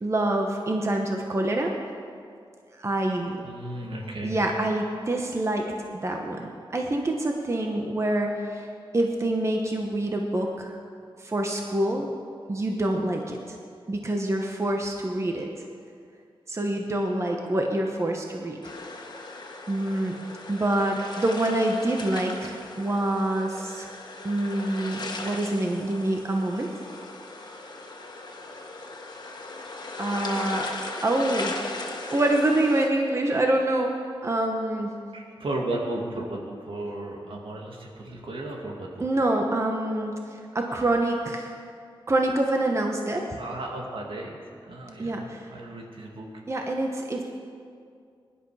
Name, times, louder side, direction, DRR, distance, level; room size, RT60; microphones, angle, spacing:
voice 1, 0.0-1.7 2.8-3.4 4.2-5.7 5.9-8.7 8.9-10.8 11.2-12.1 12.5-13.6 13.9-15.5 16.5-18.6 19.7-20.2 20.5-23.9 24.2-26.7 30.0-30.7 31.0-31.6 32.1-35.0 39.0-41.6 42.1-43.4 45.0-45.5 46.5-47.2, right 1 dB, 30° right, 2 dB, 1.2 m, -26 dB
voice 2, 3.4-4.4 35.1-39.1 43.3-46.3, right 1 dB, 75° right, 0 dB, 2.2 m, -35 dB
sound 1, 18.6-32.9, left 2 dB, 50° left, 1.6 m, -38 dB
20.0 x 11.0 x 4.9 m, 2.3 s
wide cardioid pair, 115°, 9 cm